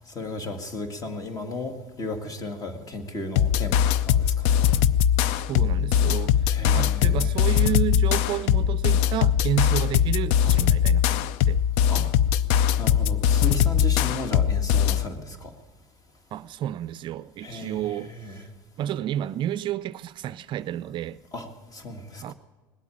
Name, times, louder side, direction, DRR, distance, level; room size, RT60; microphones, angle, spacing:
voice 1, 0.1-4.5 6.5-7.5 11.9-12.0 12.8-15.5 17.4-18.5 21.3-22.3, left 2 dB, 35° left, 2.0 m, -35 dB
sound 1, 3.4-15.1, left 9 dB, 70° left, 0.5 m, -21 dB
voice 2, 5.3-11.6 12.0-12.1 16.3-18.1 18.8-21.2 22.2-22.3, right 11 dB, 50° right, 0.4 m, -31 dB
19.5 x 8.3 x 8.6 m
supercardioid pair, 90°, 11 cm